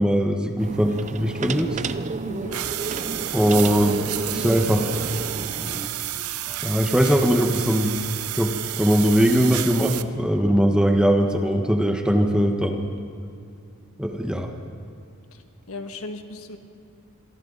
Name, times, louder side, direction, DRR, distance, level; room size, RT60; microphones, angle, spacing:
voice 1, 0.0-1.8 3.3-4.0 4.3-4.9 6.6-7.9 8.3-12.9 14.0-14.5, equal, 5° right, 3 dB, 1.3 m, -20 dB
sound 1, 0.6-5.9, right 4 dB, 35° right, 0.5 m, -32 dB
voice 2, 2.2-2.6 15.3-15.4 15.7-16.6, left 2 dB, 70° left, 5 dB, 1.5 m, -36 dB
sound 2, 2.5-10.0, right 13 dB, 90° right, 0.7 m, -31 dB
sound 3, 2.6-10.1, equal, 25° left, 2.4 m, -44 dB
27.5 x 23.0 x 4.1 m, 2.5 s
head